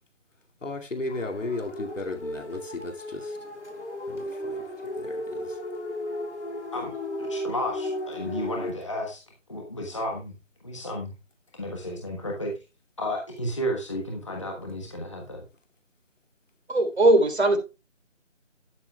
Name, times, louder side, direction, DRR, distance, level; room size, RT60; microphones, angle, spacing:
voice 1, 0.6-3.3 4.5-4.6 4.9-5.5, left 2 dB, 80° left, 2.5 m, -34 dB
sound 1, 1.1-8.7, left 1 dB, 65° left, 3.1 m, -35 dB
voice 2, 7.2-9.2 9.5-10.3 10.6-11.1 11.6-12.5 13.0-15.4, equal, 25° left, 1.3 m, -32 dB
voice 3, 16.7-17.6, right 1 dB, 60° right, 3.6 m, -19 dB
12.0 x 11.0 x 2.3 m
figure-of-eight pair, 175°, 37 cm